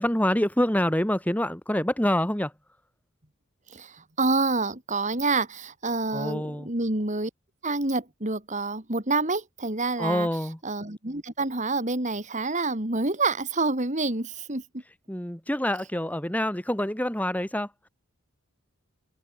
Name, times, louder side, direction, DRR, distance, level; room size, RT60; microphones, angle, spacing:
voice 1, 0.0-2.5 6.1-6.7 10.0-10.6 15.1-17.9, left 1 dB, 5° left, 1.4 m, -26 dB
voice 2, 3.7-7.3 7.6-10.3 10.6-14.8, right 3 dB, 35° right, 2.9 m, -27 dB
head